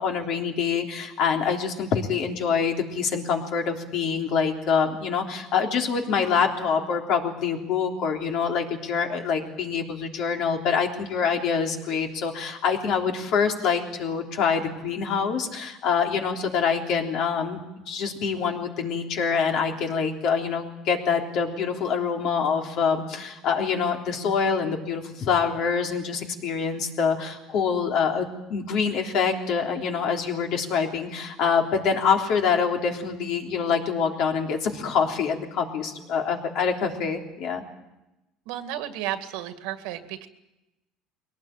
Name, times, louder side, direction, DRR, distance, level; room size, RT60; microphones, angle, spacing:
voice 1, 0.0-17.6 17.9-37.6, left 6 dB, 60° left, 2 dB, 3.5 m, -25 dB
voice 2, 38.5-40.3, right 12 dB, 80° right, 9 dB, 1.9 m, -33 dB
22.5 x 18.5 x 9.1 m, 0.96 s
cardioid pair, 140°, 0 cm